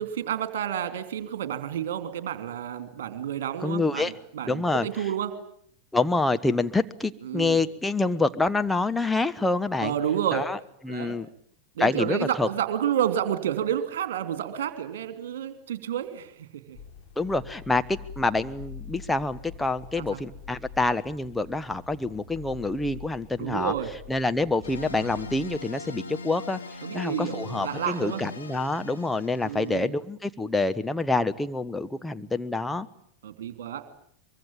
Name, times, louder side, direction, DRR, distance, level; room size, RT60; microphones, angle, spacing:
voice 1, 0.0-5.3 7.2-7.6 9.8-10.4 10.9-11.1 11.8-16.3 16.7-16.8 20.0-20.2 23.4-23.9 26.8-28.2 29.4-29.9 33.2-33.8, right 10 dB, 55° right, 10 dB, 2.8 m, -30 dB
voice 2, 3.6-4.1 4.5-4.9 5.9-9.9 10.3-10.6 10.8-11.3 11.8-12.5 17.2-23.7 24.1-26.6 26.9-32.9, left 3 dB, 5° left, 9 dB, 1.1 m, -27 dB
sound 1, 16.7-25.6, left 7 dB, 40° left, 7.7 m, -45 dB
sound 2, 24.6-29.8, left 3 dB, 75° left, 2.5 m, -39 dB
24.0 x 23.0 x 9.0 m, 0.67 s
figure-of-eight pair, 90°, 0 cm